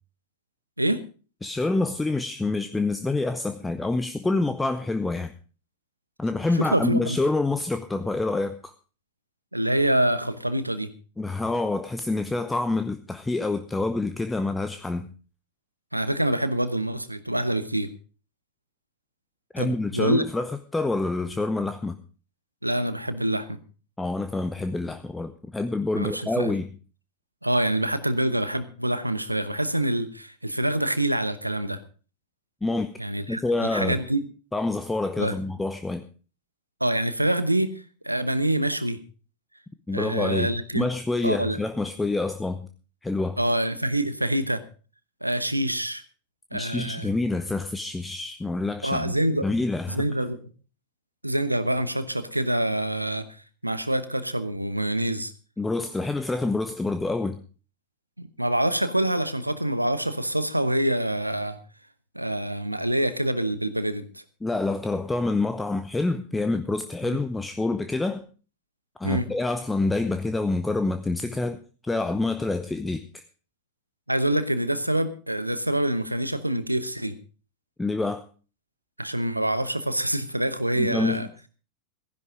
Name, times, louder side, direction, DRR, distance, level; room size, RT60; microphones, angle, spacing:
voice 1, 1.4-5.3 6.2-8.7 11.2-15.1 19.5-22.0 24.0-26.7 32.6-32.9 33.3-34.0 34.5-36.1 39.9-40.5 40.7-42.7 43.0-43.4 46.5-49.1 49.4-50.0 55.6-57.4 64.4-68.2 69.0-73.2 77.8-78.2 80.8-81.5, left 2 dB, 10° left, 9 dB, 0.8 m, -27 dB
voice 2, 6.7-7.2 9.5-10.9 15.9-17.9 19.6-20.2 22.6-23.6 26.0-26.5 27.4-31.8 33.0-34.2 35.2-35.3 36.8-39.0 39.9-40.9 41.2-41.6 43.4-44.6 45.2-46.0 46.5-47.1 48.8-49.5 49.9-50.5 51.2-55.3 58.2-61.6 62.1-64.2 67.0-67.2 69.0-69.3 74.1-77.2 79.0-81.3, right 1 dB, 85° right, 13 dB, 1.0 m, -26 dB
15.0 x 11.0 x 5.1 m, 0.37 s
figure-of-eight pair, 90°, 0 cm